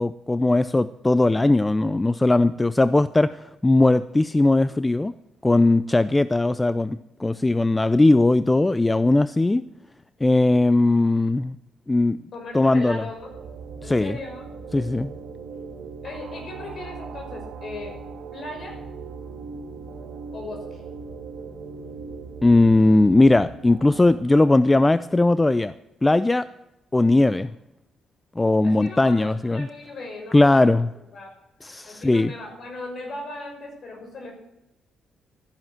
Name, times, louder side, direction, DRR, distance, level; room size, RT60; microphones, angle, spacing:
voice 1, 0.0-5.1 5.4-9.7 10.2-11.6 11.9-12.2 12.5-13.0 13.8-14.2 14.7-15.1 22.4-25.7 26.0-26.5 26.9-27.5 28.4-29.7 30.3-30.9 31.6-32.3, left 2 dB, 15° left, 15 dB, 0.4 m, -19 dB
voice 2, 12.3-13.3 13.8-14.5 16.0-18.0 18.3-18.8 20.3-20.8 28.6-30.7 31.1-31.3 31.9-34.3, left 2 dB, 55° left, 2 dB, 6.2 m, -37 dB
sound 1, 12.7-24.2, right 4 dB, 80° right, 2.6 m, -39 dB
13.5 x 11.0 x 7.6 m, 0.90 s
cardioid pair, 90°, 0 cm